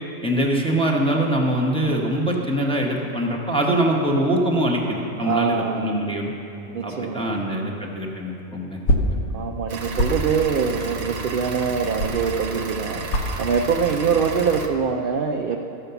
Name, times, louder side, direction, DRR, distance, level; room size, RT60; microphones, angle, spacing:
voice 1, 0.2-6.3 6.8-8.8, right 1 dB, 5° left, -2 dB, 0.8 m, -23 dB
voice 2, 5.2-5.9 6.7-7.4 9.3-15.6, right 6 dB, 65° right, 3 dB, 0.5 m, -24 dB
sound 1, 7.9-12.7 13.0-13.4 13.7-14.2 14.5-15.0, equal, 85° left, 1.4 m, -25 dB
sound 2, 9.7-14.7, right 3 dB, 80° right, 1.3 m, -32 dB
14.0 x 5.5 x 6.8 m, 2.8 s
omnidirectional pair, 1.5 m